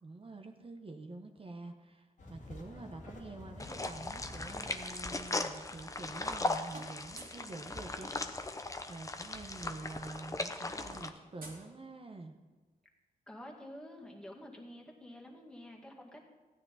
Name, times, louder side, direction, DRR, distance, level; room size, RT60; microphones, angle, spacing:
voice 1, 0.0-12.4, right 3 dB, 35° right, 5 dB, 0.9 m, -47 dB
sound 1, 2.2-4.7, left 2 dB, 55° left, 1.7 m, -49 dB
sound 2, 3.6-11.1, left 2 dB, 20° left, 0.7 m, -38 dB
sound 3, 6.2-6.4 6.7-7.5 8.9-9.0 9.2-9.4 9.7-12.3, right 2 dB, 75° right, 2.7 m, -54 dB
voice 2, 13.3-16.3, left 1 dB, 5° left, -1 dB, 2.0 m, -49 dB
14.5 x 9.7 x 4.1 m, 1.3 s
cardioid pair, 85°, 15 cm